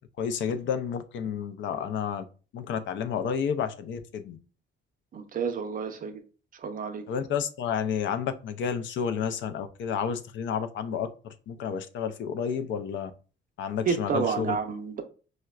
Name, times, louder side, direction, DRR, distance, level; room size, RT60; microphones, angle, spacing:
voice 1, 0.2-2.3 2.5-4.4 7.1-13.1 13.6-14.6, left 7 dB, 70° left, 0.4 m, -31 dB
voice 2, 5.1-6.2 6.5-7.1 13.9-15.0, right 6 dB, 45° right, 0.5 m, -30 dB
4.6 x 2.1 x 2.3 m
cardioid pair, 90°, 20 cm